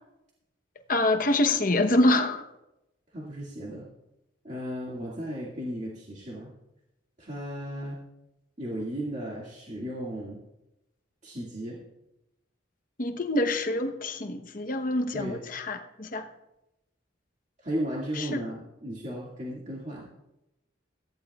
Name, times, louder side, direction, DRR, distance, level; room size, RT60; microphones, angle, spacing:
voice 1, 0.9-2.4 13.0-16.3 18.2-18.4, left 1 dB, 45° left, 6 dB, 1.0 m, -26 dB
voice 2, 3.1-3.9 4.4-6.5 7.2-8.0 8.6-10.4 11.2-11.8 15.1-15.4 17.6-20.1, equal, 35° right, -5 dB, 2.1 m, -35 dB
17.5 x 14.0 x 2.4 m, 0.91 s
head